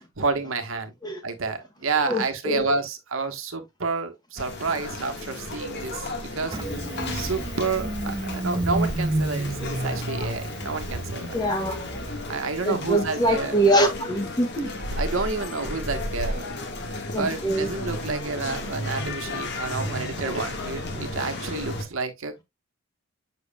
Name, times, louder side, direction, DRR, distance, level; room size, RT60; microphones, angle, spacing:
voice 1, 0.2-0.9 1.2-6.6 7.1-11.3 12.2-13.6 14.9-16.5 17.2-22.4, right 4 dB, 80° right, 1.2 m, -29 dB
voice 2, 2.0-2.7 11.3-12.1 12.6-14.7 17.1-17.7, right 1 dB, 20° left, 1.5 m, -24 dB
sound 1, 4.4-21.8, left 2 dB, 55° left, 1.6 m, -34 dB
Engine starting, 6.5-13.0, right 2 dB, 20° right, 0.5 m, -31 dB
7.1 x 6.2 x 2.3 m
head